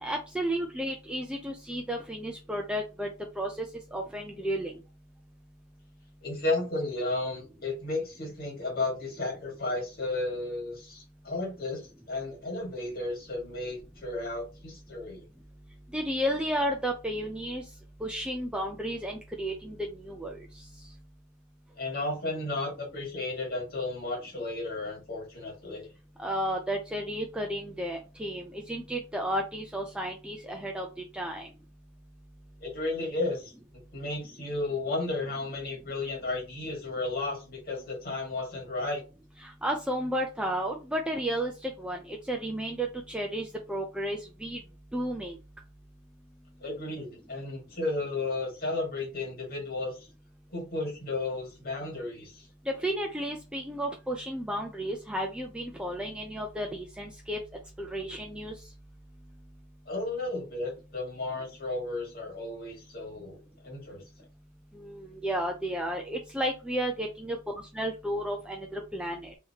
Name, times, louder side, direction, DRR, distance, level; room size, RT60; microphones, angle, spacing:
voice 1, 0.0-3.1 3.4-3.7 3.9-4.7 15.9-17.6 18.0-20.4 26.2-30.9 31.1-31.5 39.4-44.6 44.9-45.4 52.7-57.4 57.8-58.5 64.7-69.4, equal, 5° right, 1 dB, 0.4 m, -32 dB
voice 2, 6.2-15.2 21.8-25.9 32.6-33.5 33.9-39.0 46.6-50.1 50.5-52.5 59.9-64.0, left 2 dB, 45° left, 0 dB, 1.8 m, -33 dB
4.0 x 2.8 x 2.8 m, 0.30 s
head